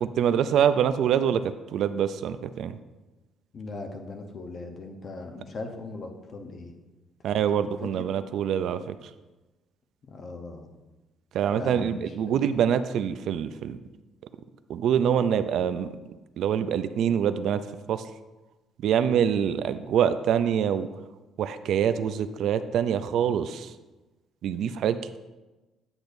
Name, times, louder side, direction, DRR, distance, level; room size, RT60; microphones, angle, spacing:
voice 1, 0.0-1.4 1.7-2.7 7.2-8.9 11.3-13.8 14.7-15.9 16.4-17.6 17.9-18.1 18.8-20.9 21.4-23.7 24.4-25.2, right 8 dB, 65° right, 11 dB, 0.4 m, -25 dB
voice 2, 3.5-6.7 10.1-10.7 11.5-12.4, left 3 dB, 35° left, 5 dB, 0.8 m, -39 dB
8.8 x 8.0 x 2.6 m, 1.1 s
cardioid pair, 150°, 0 cm